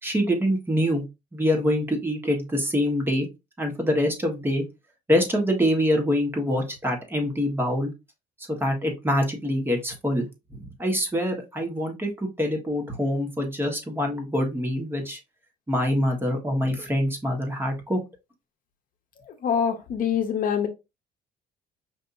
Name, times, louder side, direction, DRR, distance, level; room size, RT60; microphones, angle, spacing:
voice 1, 0.0-1.0 1.3-3.3 3.6-4.6 5.1-7.9 8.5-15.2 15.7-18.0, equal, 15° right, 1.4 m, -25 dB
voice 2, 19.3-20.7, left 7 dB, 55° left, 0.8 m, -25 dB
5.3 x 2.7 x 2.6 m
cardioid pair, 110°, 17 cm